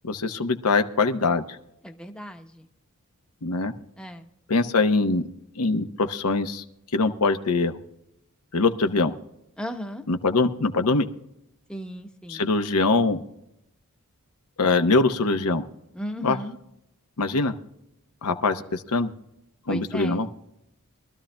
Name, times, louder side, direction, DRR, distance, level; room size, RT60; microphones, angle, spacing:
voice 1, 0.0-1.4 3.4-3.7 4.5-5.3 5.6-6.6 6.9-7.7 8.5-9.1 10.1-11.1 12.3-13.2 14.6-15.6 16.2-16.4 17.2-17.5 18.2-19.1 19.7-20.3, left 3 dB, 85° left, 8 dB, 0.9 m, -23 dB
voice 2, 1.8-2.7 4.0-4.3 9.6-10.0 11.7-12.5 15.9-16.6 19.7-20.2, equal, 5° left, 5 dB, 0.7 m, -35 dB
23.5 x 13.0 x 2.2 m, 0.83 s
head